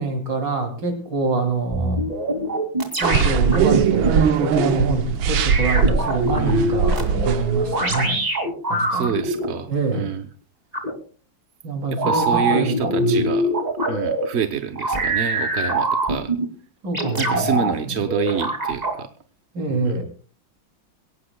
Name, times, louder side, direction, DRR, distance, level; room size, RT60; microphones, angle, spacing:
voice 1, 0.0-2.0 3.0-8.2 8.7-9.2 9.7-10.1 11.6-13.2 16.8-17.9 19.5-20.0, right 3 dB, 65° right, 4 dB, 3.7 m, -25 dB
sound 1, 1.7-4.7 5.5-9.5 10.7-10.9 12.0-14.2 14.7-16.4 16.9-17.7 18.1-19.0, right 1 dB, 20° right, 2.6 m, -23 dB
sound 2, 3.0-8.0, right 7 dB, 90° right, 1.8 m, -21 dB
voice 2, 6.3-6.8 8.9-10.3 11.9-13.5 13.9-16.3 17.2-19.1 19.7-20.0, right 7 dB, 50° right, 9 dB, 0.8 m, -27 dB
22.0 x 18.0 x 2.3 m, 0.40 s
omnidirectional pair, 2.1 m